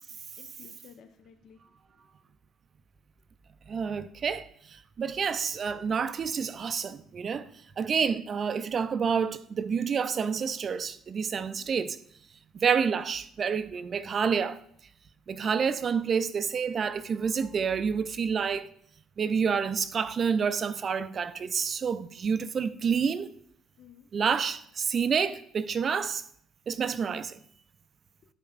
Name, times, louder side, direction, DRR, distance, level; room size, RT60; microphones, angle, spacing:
voice 1, 0.4-1.6 1.9-2.1 11.4-11.7 19.2-19.5 23.8-24.2, left 8 dB, 55° left, 0.8 m, -54 dB
voice 2, 3.7-7.5 7.8-12.0 12.6-14.6 15.3-18.7 19.2-23.3 24.1-26.2 26.7-27.4, right 6 dB, 45° right, 0.4 m, -28 dB
11.5 x 5.3 x 2.5 m
hypercardioid pair, 55°, 0 cm